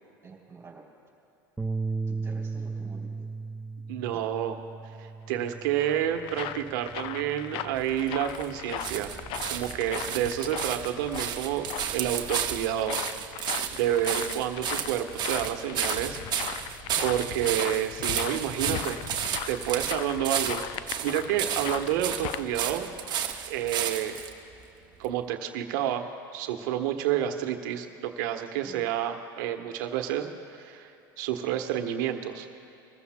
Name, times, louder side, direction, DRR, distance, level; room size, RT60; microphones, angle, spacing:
voice 1, 0.2-0.8 2.1-3.3 28.5-28.9, right 4 dB, 25° right, -2 dB, 3.4 m, -48 dB
Bass guitar, 1.6-6.0 6.4-7.8, right 4 dB, 5° right, 0.5 m, -36 dB
voice 2, 3.9-4.6 5.0-9.1 9.5-13.0 13.7-16.7 17.0-19.0 19.5-22.9 23.5-24.2 25.0-32.5, right 11 dB, 70° right, 6 dB, 1.1 m, -29 dB
sound 1, 5.4-22.4, left 13 dB, 55° left, 0.4 m, -38 dB
sound 2, 7.8-24.3 25.0-25.1, right 9 dB, 40° right, 1.0 m, -33 dB
21.5 x 14.0 x 2.2 m, 2.9 s
hypercardioid pair, 100°, 11 cm